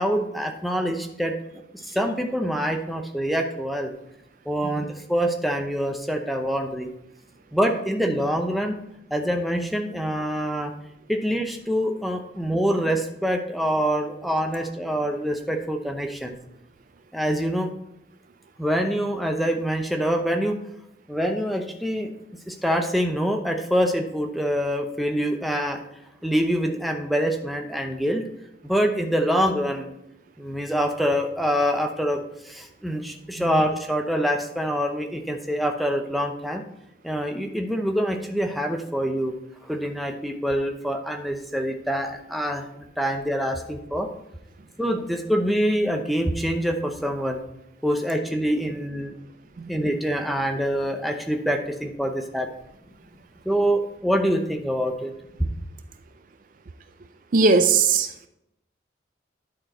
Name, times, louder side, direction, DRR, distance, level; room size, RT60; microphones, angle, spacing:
voice 1, 0.0-1.3 1.8-3.9 4.5-6.9 7.5-8.8 9.1-10.7 11.1-16.4 17.1-17.7 18.6-20.6 21.1-22.1 22.5-25.8 26.2-28.2 28.6-29.9 30.4-32.2 32.4-36.6 37.0-39.3 39.6-42.6 43.0-44.1 44.8-47.4 47.8-49.1 49.7-52.5 53.5-55.1, equal, ahead, 3 dB, 0.7 m, -25 dB
voice 2, 57.3-58.3, right 4 dB, 45° right, 9 dB, 0.4 m, -19 dB
10.5 x 4.5 x 4.3 m, 0.82 s
head